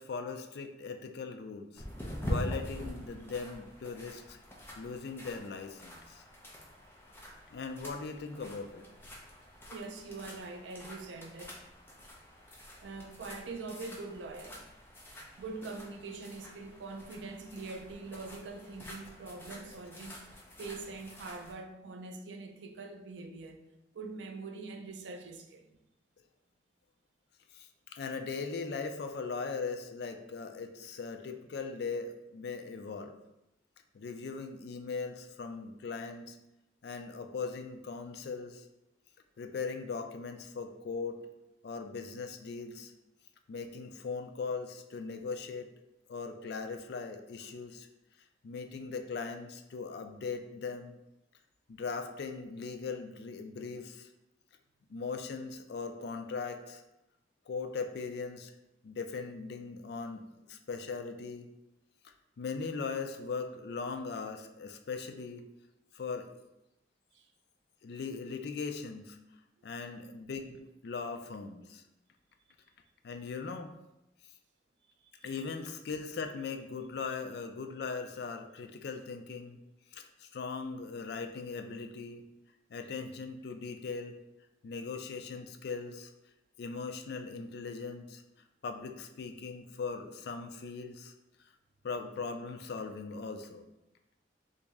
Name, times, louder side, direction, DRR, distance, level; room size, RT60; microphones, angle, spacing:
voice 1, 0.0-1.8 2.2-4.4 4.8-6.2 7.5-8.8 27.5-33.2 33.9-36.4 36.8-38.7 39.4-41.2 41.6-42.9 43.5-45.7 46.1-47.9 48.4-50.9 51.7-54.1 54.9-56.8 57.5-58.5 58.8-61.5 62.0-65.4 65.9-66.3 67.8-69.2 69.6-71.8 73.0-73.7 75.2-79.6 79.9-82.2 82.7-84.1 84.6-86.1 86.6-88.2 88.6-91.1 91.4-91.5 91.8-93.7, left 4 dB, 60° left, 0.4 m, -39 dB
sound 1, 1.8-21.5, equal, 10° left, 0.6 m, -45 dB
voice 2, 9.7-11.6 12.8-14.7 15.4-20.2 20.6-23.6 23.9-25.8 67.1-67.3, right 3 dB, 75° right, 0.4 m, -43 dB
3.0 x 2.7 x 3.5 m
head